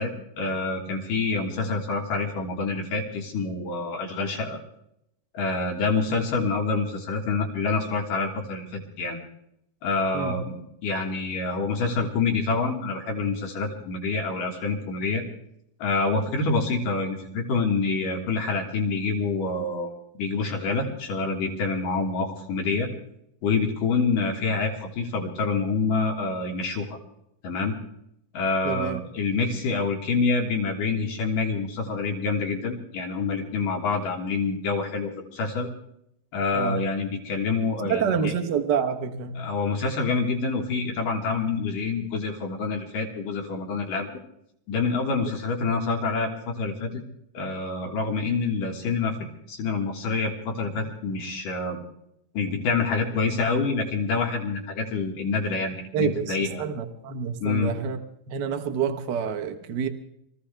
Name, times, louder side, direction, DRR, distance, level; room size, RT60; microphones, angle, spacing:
voice 1, 0.0-4.6 5.3-9.2 9.8-10.6 10.8-15.2 15.8-19.9 20.2-22.9 23.4-27.0 27.4-27.8 28.3-35.7 36.3-38.3 39.4-44.2 44.7-47.0 47.3-51.8 52.3-56.6 57.4-57.7, left 4 dB, 75° left, 3.3 m, -27 dB
voice 2, 28.6-29.0 36.5-36.8 37.9-39.5 55.9-58.0 58.3-59.9, right 7 dB, 90° right, 0.9 m, -27 dB
25.0 x 15.0 x 3.4 m
omnidirectional pair, 3.9 m